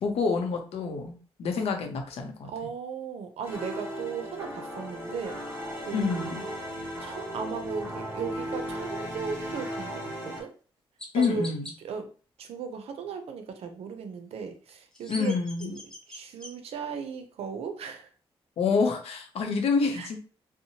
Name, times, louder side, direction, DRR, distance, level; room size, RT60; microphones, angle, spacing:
voice 1, 0.0-2.5 5.9-6.4 11.1-11.7 15.1-15.7 18.6-20.2, left 4 dB, 85° left, 4 dB, 0.6 m, -27 dB
voice 2, 2.5-5.4 5.9-6.4 7.0-10.5 11.1-11.5 11.8-12.1 12.4-15.3 15.6-15.8 16.1-18.1 19.9-20.2, right 6 dB, 85° right, 6 dB, 0.5 m, -37 dB
sound 1, 3.4-10.4, equal, 20° right, 1.1 m, -36 dB
Chirp tweet, 10.1-10.2 11.0-11.7 14.7-16.5, left 1 dB, 5° left, 0.6 m, -43 dB
2.7 x 2.0 x 2.8 m, 0.39 s
wide cardioid pair, 125°, 10 cm